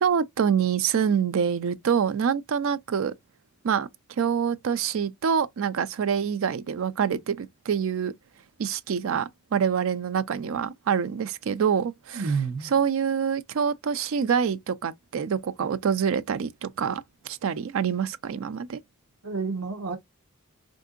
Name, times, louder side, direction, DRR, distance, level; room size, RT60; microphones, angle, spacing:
voice 1, 0.0-3.1 3.6-3.9 4.2-8.1 8.6-12.2 12.7-18.8, right 7 dB, 65° right, 0.4 m, -26 dB
voice 2, 12.1-12.8 19.2-20.0, right 5 dB, 85° right, 0.9 m, -29 dB
3.5 x 2.6 x 2.3 m
head